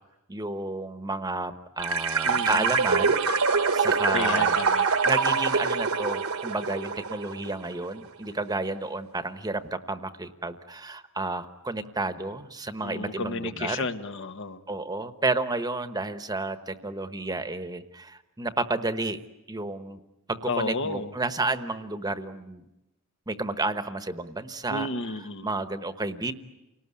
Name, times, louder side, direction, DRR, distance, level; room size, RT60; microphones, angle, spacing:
voice 1, 0.3-3.2 3.5-4.6 5.0-13.9 14.7-19.2 19.5-20.0 20.3-22.6 23.3-24.9 25.4-26.3, right 2 dB, 20° right, 10 dB, 1.1 m, -31 dB
sound 1, 1.8-7.5, right 5 dB, 70° right, 1.3 m, -25 dB
voice 2, 2.2-2.7 4.1-4.9 12.8-14.6 20.5-21.1 24.7-25.5, left 3 dB, 60° left, 9 dB, 1.2 m, -32 dB
29.0 x 19.0 x 9.8 m, 0.97 s
head